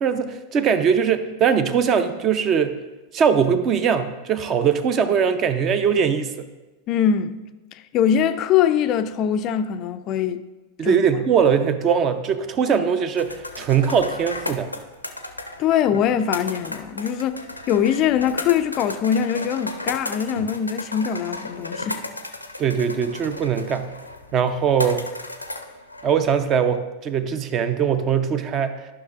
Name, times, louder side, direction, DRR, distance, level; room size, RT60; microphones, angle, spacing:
voice 1, 0.0-2.7 3.1-6.5 10.8-14.7 22.6-23.9 24.3-25.1 26.0-28.9, right 7 dB, 30° right, 0.5 m, -21 dB
voice 2, 6.9-7.4 7.7-10.4 10.8-11.0 15.6-17.4 17.7-22.0, left 9 dB, 35° left, 0.3 m, -22 dB
sound 1, 13.2-26.4, left 2 dB, 85° left, 0.5 m, -34 dB
12.5 x 5.9 x 2.4 m
figure-of-eight pair, 90°, 0 cm